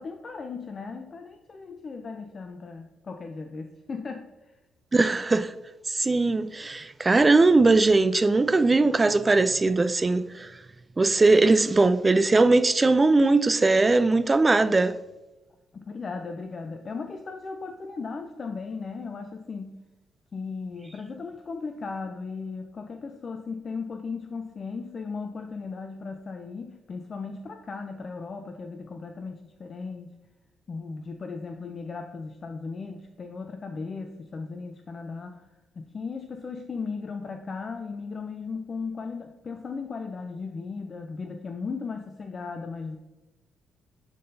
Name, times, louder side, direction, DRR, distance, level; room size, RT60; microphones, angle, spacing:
voice 1, 0.0-4.5 15.7-19.8 20.3-30.1 30.7-35.5 35.7-43.0, left 4 dB, 40° left, 0.5 m, -36 dB
voice 2, 4.9-5.5 5.9-10.5 11.0-15.0, right 3 dB, 25° right, 0.3 m, -20 dB
10.5 x 3.8 x 2.7 m
cardioid pair, 90°, 0 cm